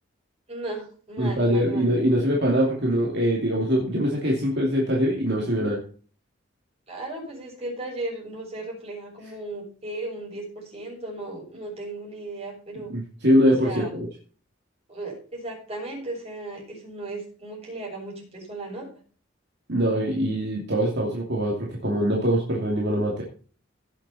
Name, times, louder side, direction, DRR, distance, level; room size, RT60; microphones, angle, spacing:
voice 1, 0.5-1.9 6.9-12.9 13.5-13.9 14.9-18.9, right 2 dB, 30° right, -2 dB, 6.7 m, -36 dB
voice 2, 1.2-5.8 12.9-14.1 19.7-23.2, equal, 55° right, -2 dB, 2.7 m, -23 dB
17.5 x 7.3 x 4.3 m, 0.41 s
head